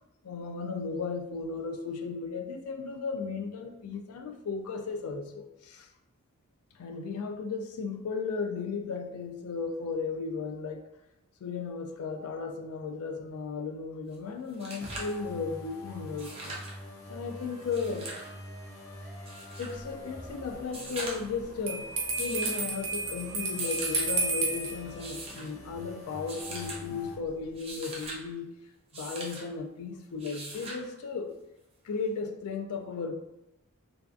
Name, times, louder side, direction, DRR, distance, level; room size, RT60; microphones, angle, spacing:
voice 1, 0.2-5.9 6.7-10.9 11.4-16.5 17.1-18.1 19.6-21.9 22.2-28.5 28.9-31.3 31.8-33.1, left 4 dB, 80° left, 5 dB, 0.4 m, -35 dB
sound 1, 14.1-14.2 14.5-15.2 16.1-16.8 17.6-18.3 19.3-19.8 20.6-21.4 22.2-22.7 23.4-24.1 24.9-25.5 26.3-26.8 27.4-28.2 28.9-29.4 30.2-30.8 32.2-32.3, right 2 dB, 25° right, 0.4 m, -41 dB
sound 2, 14.8-27.2, left 1 dB, 40° left, 0.7 m, -46 dB
Bell, 21.7-24.8, right 3 dB, 90° right, 0.6 m, -31 dB
2.6 x 2.3 x 2.4 m, 0.91 s
head